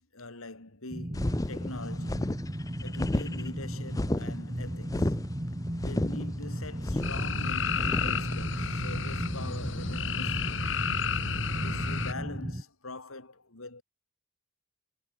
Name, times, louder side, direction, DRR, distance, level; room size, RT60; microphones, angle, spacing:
voice 1, 0.0-2.3 2.8-5.1 5.7-10.7 11.6-13.8, left 2 dB, 80° left, 3.3 m, -44 dB
sound 1, 0.9-12.6, equal, 20° right, 2.1 m, -35 dB
sound 2, 1.1-8.2, left 1 dB, 15° left, 0.4 m, -32 dB
sound 3, 7.0-12.1, left 5 dB, 60° left, 4.3 m, -31 dB
head